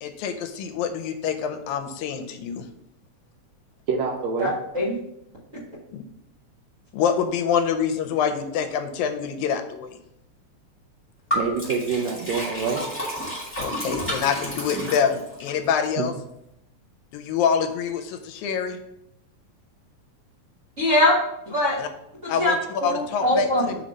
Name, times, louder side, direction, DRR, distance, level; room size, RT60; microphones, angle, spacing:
voice 1, 0.0-2.7 5.9-6.1 6.9-10.0 13.6-16.1 17.1-18.8 21.8-21.9 22.3-22.6 22.8-23.8, left 7 dB, 80° left, 7 dB, 1.9 m, -26 dB
voice 2, 3.9-4.5 11.3-12.8 16.0-16.1, right 5 dB, 75° right, 2 dB, 1.7 m, -26 dB
voice 3, 4.4-4.9 20.8-21.1 21.5-21.8 22.2-22.5 22.8-23.7, left 1 dB, 30° right, -6 dB, 1.4 m, -22 dB
Liquid, 11.3-15.5, equal, 5° left, 0.9 m, -30 dB
5.9 x 3.1 x 5.2 m, 0.81 s
omnidirectional pair, 3.4 m